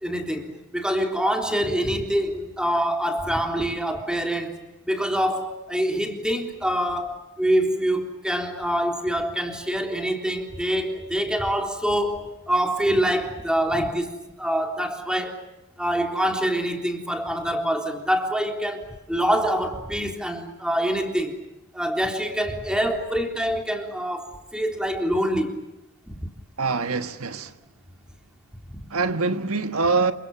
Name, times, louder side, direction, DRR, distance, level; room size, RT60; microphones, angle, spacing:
voice 1, 0.0-15.4 15.8-21.4 21.7-25.6 26.1-26.2 28.7-28.8, equal, 5° right, 3.6 m, -25 dB
voice 2, 26.6-27.5 28.9-30.1, right 4 dB, 80° right, 1.4 m, -24 dB
29.0 x 25.5 x 7.2 m
head